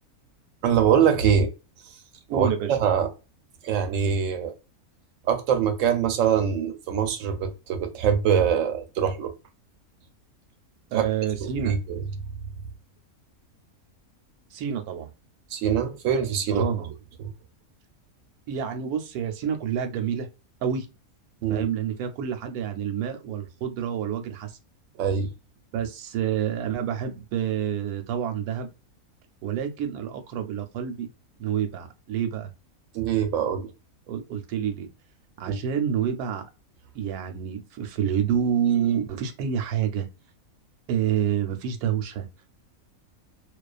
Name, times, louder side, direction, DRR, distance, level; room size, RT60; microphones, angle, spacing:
voice 1, 0.6-1.5 2.3-3.1 3.6-4.5 5.2-9.3 10.9-11.1 11.4-12.0 15.5-16.7 17.2-17.3 21.4-21.7 25.0-25.3 32.9-33.7 35.5-35.6, right 8 dB, 70° right, 0.8 m, -23 dB
voice 2, 2.3-2.8 10.9-11.8 14.5-15.1 16.5-16.9 18.5-20.3 20.6-20.9 21.5-24.6 25.7-28.7 29.4-31.1 31.4-32.5 34.1-34.9 35.4-36.4 36.9-40.1 40.9-42.3, right 8 dB, 90° right, 1.1 m, -28 dB
2.4 x 2.3 x 2.3 m
omnidirectional pair, 1.5 m